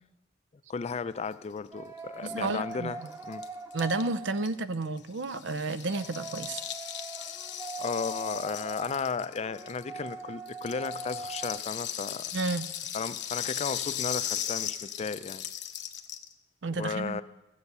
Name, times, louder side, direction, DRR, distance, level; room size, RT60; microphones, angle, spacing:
voice 1, 0.7-3.0 3.2-3.4 7.8-12.3 12.9-15.4 16.8-17.2, left 5 dB, 35° left, 15 dB, 0.4 m, -34 dB
sound 1, 1.7-4.8 5.7-11.6, right 3 dB, 15° right, 0.6 m, -42 dB
voice 2, 2.2-2.9 3.7-6.6 12.3-12.7 16.6-17.2, right 3 dB, 90° right, 14 dB, 0.6 m, -31 dB
Rattle (instrument), 2.4-2.5 2.7-2.8 3.0-10.1 10.5-16.3, left 10 dB, 70° left, 0.9 m, -37 dB
14.5 x 7.9 x 6.8 m, 1.0 s
head